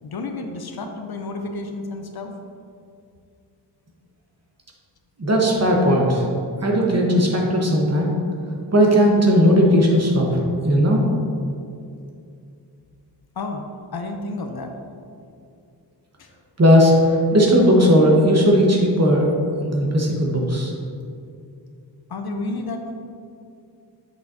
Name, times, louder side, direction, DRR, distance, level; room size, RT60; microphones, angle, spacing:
voice 1, 0.0-2.3 13.4-13.6 13.9-14.8 16.2-16.3 22.1-22.9, left 2 dB, 55° left, 4 dB, 0.6 m, -31 dB
voice 2, 5.2-6.3 6.6-8.1 8.7-11.0 16.6-19.3 19.6-20.7, equal, 35° right, -1 dB, 1.1 m, -17 dB
8.1 x 6.4 x 2.7 m, 2.5 s
wide cardioid pair, 130°, 45 cm